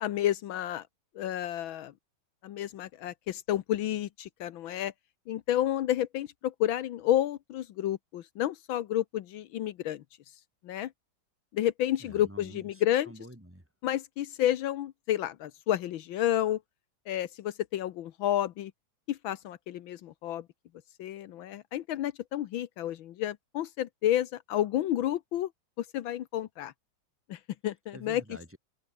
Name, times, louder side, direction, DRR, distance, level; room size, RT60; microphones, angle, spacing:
voice 1, 0.0-0.8 1.2-1.9 2.4-4.9 5.3-10.0 10.6-10.9 11.5-13.1 13.8-16.6 17.1-18.7 19.1-20.4 21.0-25.5 25.8-26.7 27.3-28.2, left 12 dB, 80° left, 1.6 m, -30 dB
voice 2, 12.0-13.6 27.9-28.6, equal, 5° right, 2.7 m, -48 dB
open air
omnidirectional pair, 2.2 m